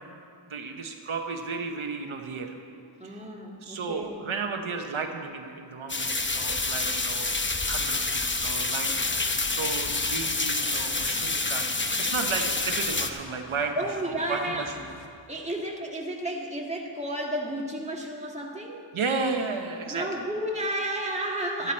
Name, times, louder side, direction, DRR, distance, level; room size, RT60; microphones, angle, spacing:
voice 1, 0.5-2.6 3.0-3.3 3.6-9.1 9.5-11.7 12.0-14.9 18.9-20.3, right 4 dB, 85° right, 4 dB, 1.0 m, -33 dB
voice 2, 3.0-4.2 13.8-14.7 15.3-18.8 19.8-21.7, right 1 dB, 15° right, -1 dB, 1.9 m, -32 dB
sound 1, 5.9-13.1, left 3 dB, 25° left, 0.8 m, -28 dB
sound 2, 8.9-15.1, left 3 dB, 75° left, 1.1 m, -47 dB
13.0 x 12.5 x 4.3 m, 2.6 s
wide cardioid pair, 45°, 47 cm